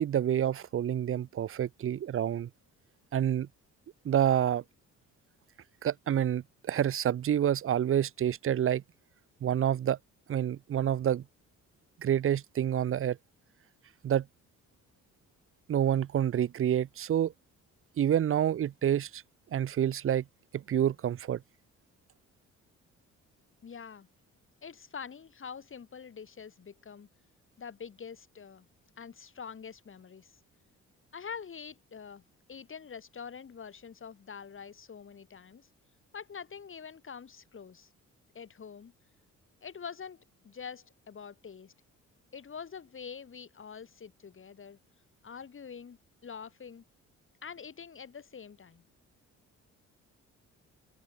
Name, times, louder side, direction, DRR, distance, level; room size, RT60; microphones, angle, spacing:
voice 1, 0.0-2.5 3.1-3.5 4.0-4.6 5.8-8.8 9.4-10.0 10.3-11.2 12.0-13.2 14.0-14.2 15.7-17.3 18.0-19.2 19.5-20.2 20.5-21.4, right 10 dB, 45° right, 0.6 m, -28 dB
voice 2, 23.6-24.1 24.6-27.1 27.6-28.7 29.0-30.4 31.1-32.2 32.5-35.7 36.1-37.9 38.3-38.9 39.6-41.7 42.3-44.8 45.2-46.0 46.2-46.8 47.4-48.8, left 6 dB, 45° left, 5.0 m, -45 dB
cardioid pair, 90°, 30 cm